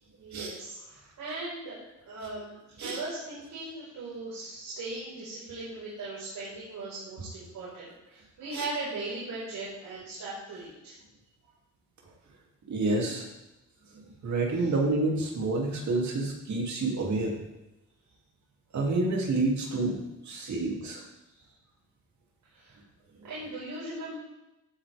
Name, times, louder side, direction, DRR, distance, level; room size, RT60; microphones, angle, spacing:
voice 1, 0.2-1.8 2.1-2.5 2.8-10.9 20.3-20.6 21.3-21.4 22.5-22.8 23.2-24.2, right 2 dB, 85° right, -9 dB, 4.8 m, -39 dB
voice 2, 12.7-13.3 14.2-17.4 18.7-21.0, right 2 dB, 60° right, -1 dB, 2.7 m, -28 dB
15.0 x 8.6 x 3.5 m, 0.97 s
wide cardioid pair, 155°, 32 cm